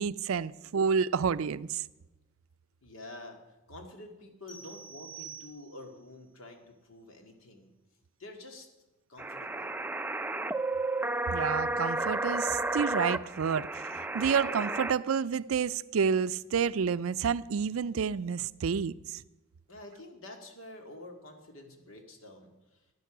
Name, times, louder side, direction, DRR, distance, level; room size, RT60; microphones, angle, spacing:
voice 1, 0.0-1.8 11.3-19.2, right 6 dB, 85° right, 0.4 m, -29 dB
voice 2, 2.8-7.7 8.2-8.7 9.1-9.8 19.7-22.8, left 2 dB, 75° left, 2.0 m, -48 dB
sound 1, 4.5-6.0, right 7 dB, 45° left, 3.7 m, -47 dB
sound 2, 9.2-14.9, right 2 dB, 10° right, 0.4 m, -32 dB
15.0 x 11.0 x 6.0 m
head